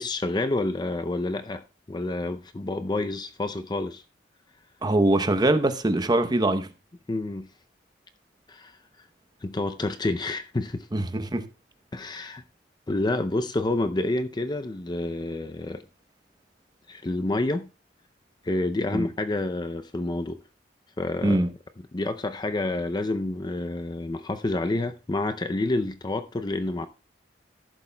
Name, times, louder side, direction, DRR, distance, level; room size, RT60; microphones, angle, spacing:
voice 1, 0.0-1.6 1.9-4.0 7.1-7.5 8.5-8.7 9.4-10.9 11.9-12.4 12.9-15.8 16.9-17.7 18.4-20.4 21.0-21.4 21.9-26.9, left 2 dB, 25° left, 0.5 m, -28 dB
voice 2, 4.8-6.7 10.9-11.4 18.9-19.1 21.2-21.5, right 1 dB, 25° right, 0.8 m, -22 dB
13.5 x 11.0 x 2.2 m
head